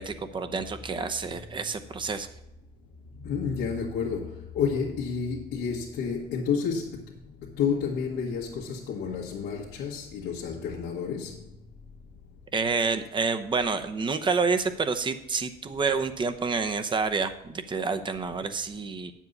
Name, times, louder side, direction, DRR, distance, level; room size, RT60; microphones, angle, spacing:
voice 1, 0.0-2.3 12.5-19.1, right 4 dB, 30° right, 0.9 m, -28 dB
voice 2, 3.2-7.1 7.4-11.4, left 6 dB, 90° left, 1.6 m, -30 dB
9.5 x 7.4 x 5.4 m
cardioid pair, 110°, 17 cm